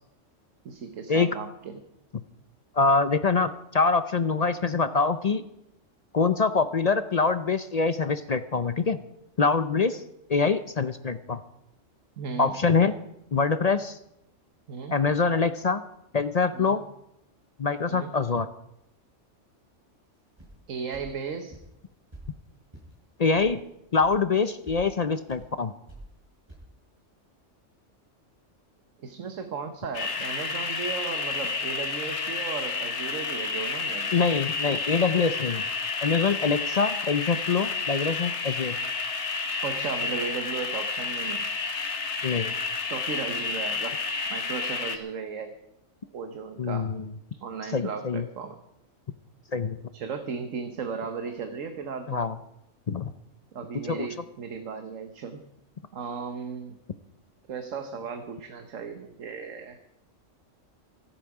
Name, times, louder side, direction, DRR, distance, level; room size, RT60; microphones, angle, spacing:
voice 1, 0.6-1.8 12.2-12.6 14.7-14.9 16.5-16.7 17.8-18.2 20.7-21.6 29.0-34.2 39.6-41.5 42.9-44.0 44.3-45.5 46.1-46.9 47.4-48.6 49.9-52.2 53.5-55.5 55.9-56.8 57.5-59.8, right 5 dB, 85° right, 7 dB, 1.5 m, -36 dB
voice 2, 2.8-5.4 6.1-9.0 9.4-10.0 10.3-11.4 12.4-12.9 13.3-14.0 14.9-15.8 16.1-16.8 17.6-18.5 23.2-23.6 23.9-25.7 34.1-35.6 36.0-38.8 42.2-42.5 46.6-47.1 47.7-48.2 49.5-49.8 52.1-52.3 52.9-53.1 53.9-54.1, left 4 dB, 45° left, 12 dB, 0.5 m, -24 dB
sound 1, 20.4-20.6 20.9-21.1 21.5-21.7 22.1-22.3 22.7-22.9 23.3-23.5 24.0-24.1 24.5-24.8 25.3-25.4 25.9-26.1 26.5-26.6, right 2 dB, 20° right, 6.1 m, -47 dB
sound 2, 29.9-45.0, left 4 dB, 60° left, 1.5 m, -30 dB
25.5 x 9.0 x 4.8 m, 0.80 s
omnidirectional pair, 1.3 m